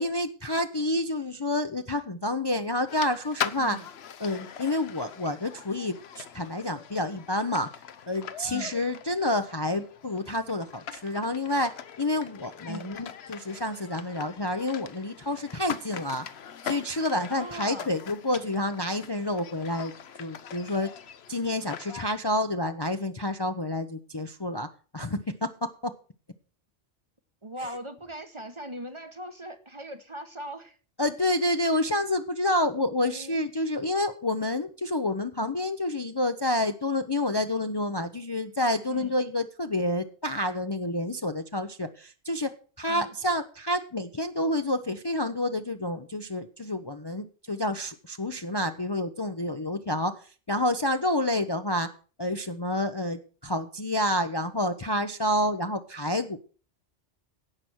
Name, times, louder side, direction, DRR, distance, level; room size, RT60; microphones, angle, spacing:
voice 1, 0.0-3.8 4.2-7.7 8.1-16.2 16.6-19.9 20.2-20.9 21.3-24.7 24.9-25.9 31.0-42.5 42.8-51.9 52.2-56.4, left 1 dB, 25° left, 0.6 m, -29 dB
sound 1, 2.9-22.0, left 8 dB, 65° left, 1.0 m, -41 dB
voice 2, 3.5-3.9 8.5-8.8 12.7-13.0 17.3-17.9 27.4-30.8 33.1-33.4 38.9-39.1 42.9-43.1, right 1 dB, 30° right, 1.0 m, -40 dB
16.5 x 6.0 x 6.3 m
omnidirectional pair, 1.2 m